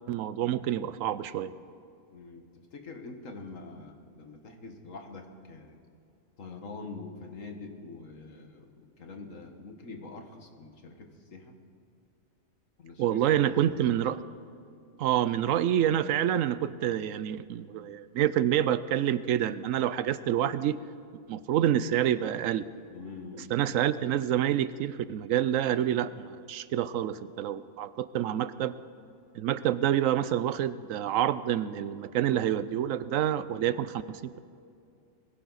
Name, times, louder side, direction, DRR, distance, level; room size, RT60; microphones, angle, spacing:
voice 1, 0.1-1.5 13.0-14.2 15.0-20.8 21.3-22.6 23.5-28.7 29.3-34.4, right 11 dB, 75° right, 15 dB, 1.0 m, -27 dB
voice 2, 2.1-2.4 2.7-5.8 6.4-11.6 12.8-14.0 22.9-23.5, left 3 dB, 70° left, 4 dB, 1.9 m, -45 dB
21.0 x 16.0 x 4.1 m, 2.5 s
omnidirectional pair, 1.4 m